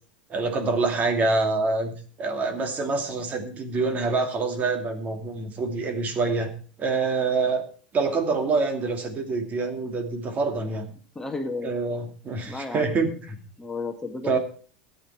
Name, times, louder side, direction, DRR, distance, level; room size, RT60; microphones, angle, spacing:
voice 1, 0.3-6.5 6.8-7.6 7.9-10.9 11.6-13.4 14.2-14.4, right 3 dB, 35° right, 6 dB, 2.5 m, -26 dB
voice 2, 11.1-11.7 12.4-12.9 13.6-14.4, left 3 dB, 10° left, 4 dB, 1.6 m, -33 dB
13.5 x 8.8 x 4.6 m, 0.42 s
hypercardioid pair, 95°, 5 cm